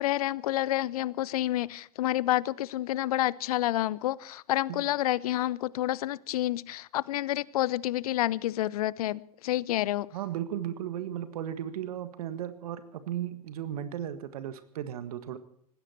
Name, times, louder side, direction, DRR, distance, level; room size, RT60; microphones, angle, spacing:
voice 1, 0.0-10.1, left 14 dB, 65° left, 0.6 m, -29 dB
voice 2, 10.1-15.4, right 10 dB, 70° right, 1.7 m, -35 dB
19.0 x 15.5 x 4.5 m
hypercardioid pair, 90°, 20 cm